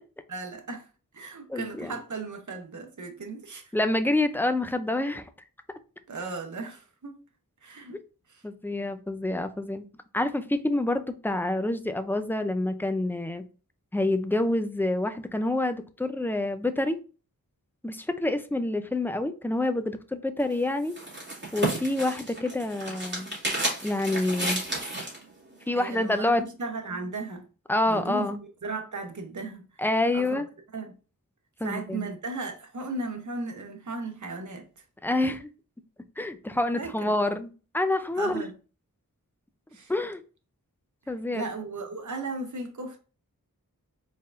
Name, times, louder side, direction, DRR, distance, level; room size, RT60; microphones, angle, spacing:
voice 1, 0.3-3.7 6.1-7.2 7.6-8.0 8.3-8.4 25.7-27.5 27.9-29.9 30.1-30.4 30.7-31.0 31.6-34.8 36.8-37.1 38.2-38.5 39.7-39.9 41.3-43.0, right 3 dB, 55° right, 0.9 m, -36 dB
voice 2, 1.5-1.9 3.7-5.2 8.4-9.8 10.1-13.4 13.9-17.0 17.8-21.0 21.5-23.4 23.8-24.6 25.7-26.4 27.7-28.4 29.8-30.5 31.6-32.0 35.0-35.5 36.2-37.5 37.7-38.5 39.9-40.2 41.1-41.5, left 2 dB, 5° left, 0.4 m, -27 dB
sound 1, 20.4-25.2, right 1 dB, 30° right, 2.0 m, -32 dB
4.4 x 3.5 x 2.5 m
wide cardioid pair, 65°, 35 cm